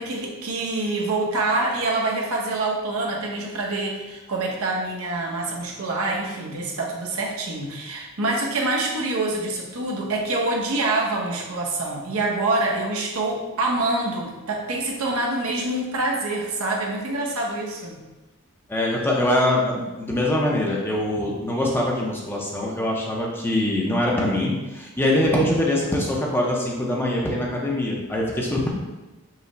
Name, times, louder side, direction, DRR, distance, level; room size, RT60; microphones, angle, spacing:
voice 1, 0.0-18.0, right 2 dB, 75° right, -1 dB, 0.8 m, -26 dB
voice 2, 18.7-28.7, left 1 dB, 10° left, -3 dB, 0.5 m, -23 dB
5.5 x 2.0 x 3.9 m, 1.1 s
head